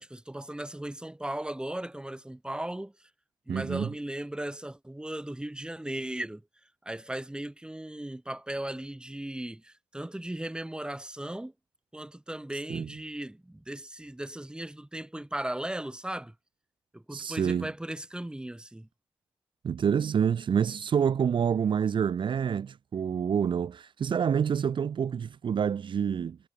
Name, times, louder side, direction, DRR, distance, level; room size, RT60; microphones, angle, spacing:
voice 1, 0.0-2.9 3.5-6.4 6.8-11.5 11.9-16.3 16.9-18.9, right 1 dB, 10° right, 3.6 m, -37 dB
voice 2, 3.5-3.9 12.7-12.9 17.1-17.7 19.6-26.4, right 7 dB, 65° right, 0.6 m, -27 dB
wide cardioid pair, 95°, 9 cm